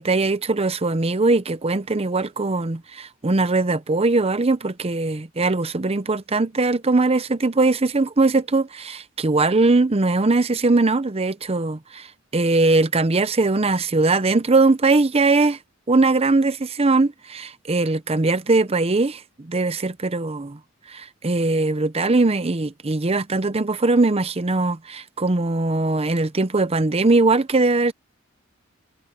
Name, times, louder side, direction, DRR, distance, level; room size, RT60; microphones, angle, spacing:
voice 1, 0.0-12.1 12.3-15.6 15.9-20.6 20.9-27.9, right 3 dB, 30° right, 0.7 m, -20 dB
head